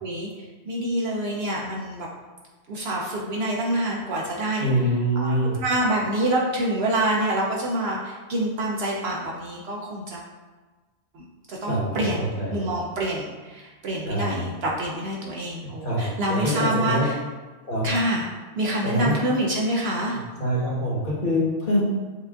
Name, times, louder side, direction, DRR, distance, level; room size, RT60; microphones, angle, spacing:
voice 1, 0.0-2.1 2.7-4.7 5.2-10.2 11.1-17.2 17.8-18.2 18.6-20.2, right 1 dB, 60° right, -3 dB, 0.8 m, -26 dB
voice 2, 4.6-5.5 11.7-12.7 14.0-14.4 15.8-17.1 17.6-17.9 18.8-19.2 20.4-21.9, equal, 40° left, -7 dB, 1.3 m, -25 dB
7.2 x 2.5 x 2.3 m, 1.3 s
omnidirectional pair, 1.3 m